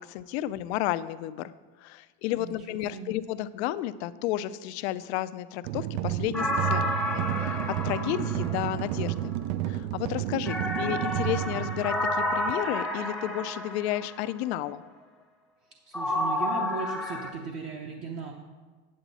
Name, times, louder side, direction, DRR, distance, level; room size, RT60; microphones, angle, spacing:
voice 1, 0.0-1.5 1.8-9.4 9.7-14.8, left 13 dB, 80° left, 14 dB, 0.5 m, -32 dB
voice 2, 2.4-3.1 10.3-10.7 15.9-18.3, right 5 dB, 45° right, 0 dB, 0.8 m, -38 dB
sound 1, 5.6-12.5, right 13 dB, 80° right, 0.5 m, -31 dB
sound 2, 6.3-9.2 10.5-14.3 15.9-17.3, left 1 dB, ahead, 0.7 m, -30 dB
8.6 x 8.0 x 4.1 m, 1.4 s
supercardioid pair, 145°, 32 cm